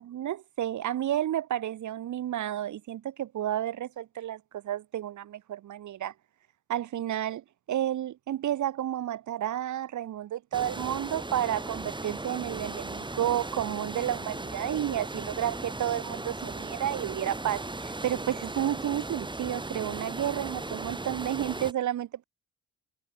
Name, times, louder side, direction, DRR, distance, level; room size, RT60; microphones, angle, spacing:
voice 1, 0.0-6.1 6.7-22.2, right 12 dB, 70° right, 4.8 m, -31 dB
sound 1, 10.5-21.7, right 2 dB, 15° right, 7.2 m, -37 dB
cardioid pair, 90°, 30 cm